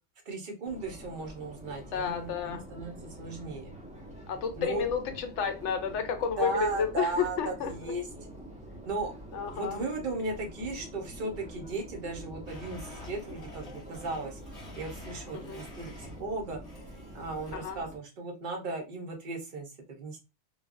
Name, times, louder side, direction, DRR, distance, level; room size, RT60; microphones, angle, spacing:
voice 1, 0.3-3.7 4.6-4.8 6.4-8.0 8.9-9.1 9.5-14.4 14.8-16.6 17.1-20.2, right 3 dB, 45° right, 0.9 m, -36 dB
Subway metro underground, 0.6-18.0, right 1 dB, 10° right, 0.4 m, -46 dB
voice 2, 1.9-2.6 4.3-7.7 9.3-9.8 15.3-15.6 17.5-17.8, left 7 dB, 75° left, 0.9 m, -31 dB
Domestic sounds home sounds, 12.5-16.3 16.6-17.6, left 2 dB, 35° left, 0.9 m, -49 dB
3.2 x 2.3 x 2.4 m
omnidirectional pair, 1.3 m